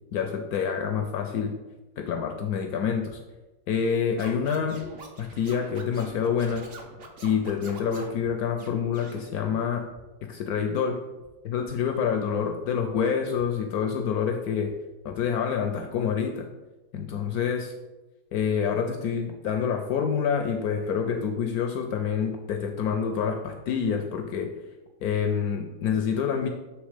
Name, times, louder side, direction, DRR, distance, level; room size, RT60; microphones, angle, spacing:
voice 1, 0.1-1.6 2.0-3.2 3.7-4.8 5.2-6.7 7.2-9.9 10.3-11.0 11.4-14.7 15.0-16.5 16.9-17.7 18.3-24.5 25.0-26.5, left 7 dB, 75° left, 5 dB, 0.8 m, -27 dB
sound 1, 3.0-3.1 4.3-4.4 4.7-4.8 6.0-6.1 6.5-6.6 7.7-7.8 8.2-8.3 9.5-9.6 9.9-10.0 11.2-11.3 11.6-11.7 12.9-13.0 13.3-13.4 14.6-14.7 15.0-15.1, right 6 dB, 80° right, 2.2 m, -52 dB
Scratching (performance technique), 4.2-8.2 8.6-9.2, right 3 dB, 55° right, 0.6 m, -44 dB
7.3 x 3.4 x 4.9 m, 1.1 s
omnidirectional pair, 2.1 m